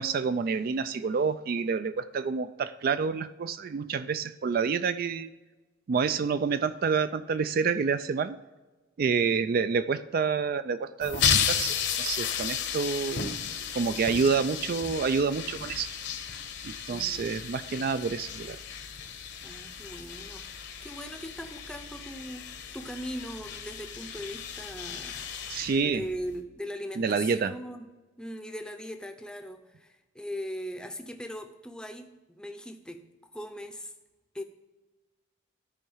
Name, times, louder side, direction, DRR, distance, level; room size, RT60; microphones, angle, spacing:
voice 1, 0.0-5.3 5.9-8.4 9.0-13.4 13.7-15.9 16.6-18.6 25.5-26.0 27.0-27.5, right 5 dB, 50° right, 13 dB, 0.3 m, -28 dB
voice 2, 9.1-9.5 16.9-17.4 19.4-27.8 28.2-33.9 34.3-34.4, equal, 5° left, 7 dB, 0.6 m, -40 dB
sound 1, 11.0-26.4, left 7 dB, 60° left, 0.9 m, -34 dB
13.0 x 4.5 x 5.5 m, 1.2 s
head